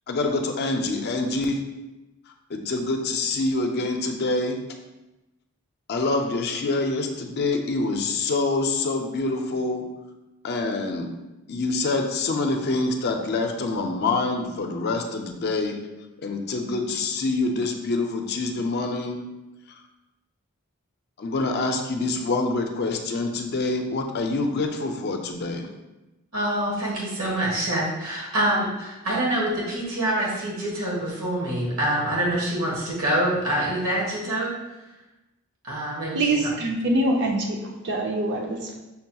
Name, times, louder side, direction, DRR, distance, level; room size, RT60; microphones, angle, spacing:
voice 1, 0.1-1.6 2.5-4.6 5.9-9.8 10.4-11.1 11.5-15.8 16.2-19.2 19.7-19.8 21.2-25.7, left 3 dB, 50° left, 4 dB, 0.4 m, -26 dB
voice 2, 26.3-34.5 35.6-36.5, right 1 dB, 75° right, -5 dB, 1.4 m, -26 dB
voice 3, 36.1-38.8, right 2 dB, 55° right, 1 dB, 0.5 m, -24 dB
5.6 x 2.8 x 2.3 m, 1.0 s
head